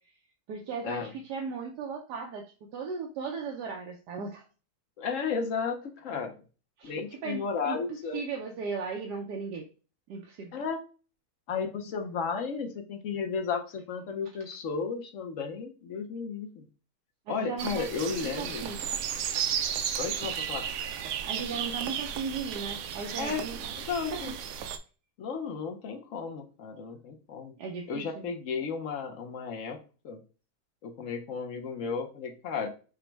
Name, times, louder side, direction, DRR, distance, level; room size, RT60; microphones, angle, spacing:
voice 1, 0.5-2.4 2.7-4.4 6.8-7.0 7.2-7.8 8.1-9.7 10.1-10.6 17.3-17.9 18.2-18.8 21.2-23.7 24.2-24.3 27.6-28.3, right 5 dB, 85° right, 1 dB, 1.3 m, -36 dB
voice 2, 5.0-6.4 6.8-8.2 10.5-10.8 11.5-16.7 17.3-18.7 20.0-20.7 23.2-23.4 23.8-24.3 25.2-27.6 27.9-30.2 30.8-32.7, left 5 dB, 60° left, 5 dB, 1.0 m, -34 dB
sound 1, 17.6-24.8, right 8 dB, 70° right, 0.9 m, -34 dB
5.1 x 2.2 x 4.4 m, 0.35 s
omnidirectional pair, 1.7 m